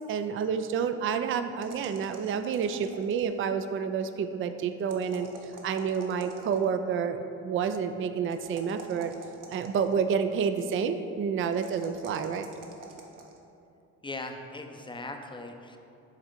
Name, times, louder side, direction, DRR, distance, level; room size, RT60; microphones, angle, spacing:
voice 1, 0.1-5.3 5.6-9.1 9.5-12.5, right 6 dB, 35° right, 9 dB, 0.4 m, -29 dB
sound 1, 1.6-3.4 4.8-6.7 8.3-10.1 11.4-13.4, right 3 dB, 50° right, 1.0 m, -48 dB
voice 2, 14.0-15.8, left 2 dB, 10° left, 4 dB, 0.6 m, -39 dB
6.4 x 3.5 x 5.1 m, 2.7 s
hypercardioid pair, 55°, 39 cm